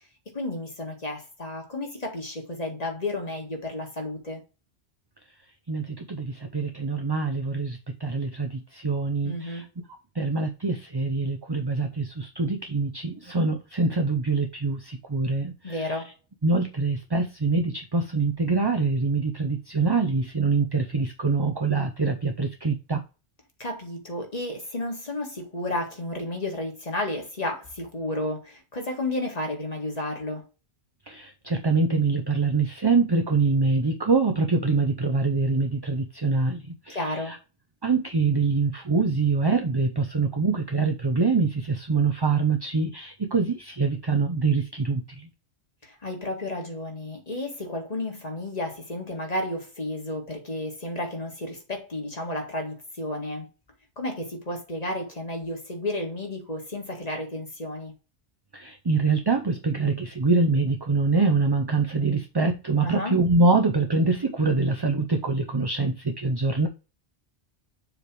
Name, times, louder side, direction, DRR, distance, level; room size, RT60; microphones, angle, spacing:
voice 1, 0.3-4.4 9.2-9.6 15.6-16.1 23.6-30.4 36.9-37.3 45.8-53.5 54.0-57.9 62.8-63.2, left 1 dB, 35° left, 2.0 m, -32 dB
voice 2, 5.7-9.6 10.1-16.0 16.4-23.0 31.1-37.4 37.8-45.3 58.5-66.7, right 3 dB, 25° right, 0.6 m, -24 dB
7.1 x 3.4 x 4.6 m
omnidirectional pair, 1.1 m